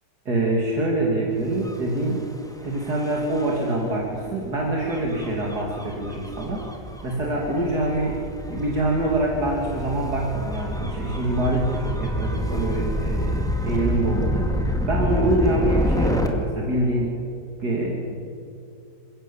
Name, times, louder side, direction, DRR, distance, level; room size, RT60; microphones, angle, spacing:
voice 1, 0.2-2.3 2.6-6.7 7.0-8.2 8.5-17.2 17.6-18.2, right 1 dB, 65° right, -2 dB, 3.3 m, -25 dB
Gull seagull / Waves surf / Siren, 1.5-16.3, equal, ahead, 2.0 m, -28 dB
27.5 x 17.0 x 7.2 m, 2.6 s
omnidirectional pair, 1.9 m